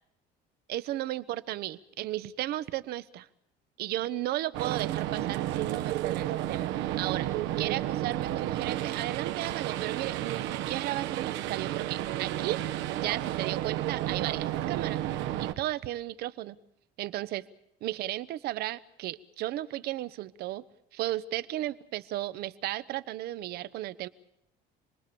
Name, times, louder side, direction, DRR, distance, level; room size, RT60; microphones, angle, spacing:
voice 1, 0.7-3.3 3.8-7.3 7.6-12.6 13.0-15.0 15.4-16.6 17.0-17.5 17.8-20.6 20.9-24.1, right 15 dB, 55° right, 15 dB, 1.0 m, -34 dB
sound 1, 4.5-15.5, right 13 dB, 80° right, 1.4 m, -32 dB
28.0 x 21.0 x 7.0 m, 0.76 s
cardioid pair, 165°, 19 cm